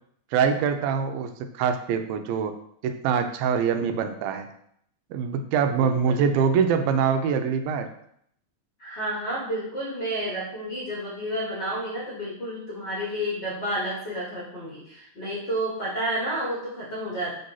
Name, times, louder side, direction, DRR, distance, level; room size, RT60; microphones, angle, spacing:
voice 1, 0.3-2.5 2.8-4.5 5.1-7.9, right 6 dB, 90° right, 7 dB, 2.4 m, -24 dB
voice 2, 5.8-6.2 8.8-17.3, right 1 dB, 45° left, -7 dB, 1.5 m, -30 dB
5.2 x 3.9 x 5.5 m, 0.70 s
omnidirectional pair, 4.1 m